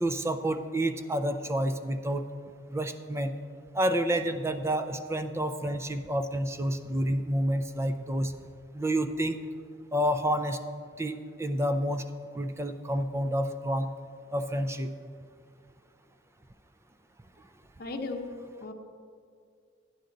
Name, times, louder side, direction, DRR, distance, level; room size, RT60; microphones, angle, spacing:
voice 1, 0.0-2.2 2.7-3.3 3.7-8.3 8.7-9.4 9.9-10.6 11.0-12.0 12.4-13.9 14.3-14.9, right 1 dB, 15° right, 9 dB, 0.4 m, -29 dB
voice 2, 17.8-18.3 18.6-18.7, left 3 dB, 50° left, 4 dB, 0.9 m, -35 dB
12.5 x 9.5 x 3.9 m, 2.2 s
head